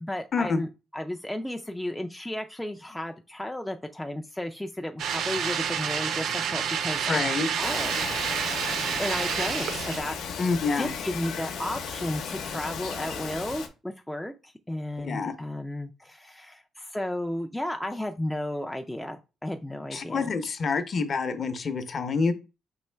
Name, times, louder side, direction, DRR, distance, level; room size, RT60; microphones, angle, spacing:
voice 1, 0.0-10.2 10.8-20.3, left 1 dB, 5° left, 4 dB, 0.3 m, -34 dB
sound 1, 5.0-10.0, right 7 dB, 65° right, 0.5 m, -29 dB
voice 2, 7.1-7.6 10.4-10.9 15.0-15.3 19.9-22.3, left 4 dB, 35° left, 9 dB, 0.7 m, -27 dB
Bird vocalization bird call bird song, 7.6-13.7, left 6 dB, 85° left, 0.8 m, -35 dB
5.4 x 3.0 x 3.3 m, 0.29 s
cardioid pair, 150°, 0 cm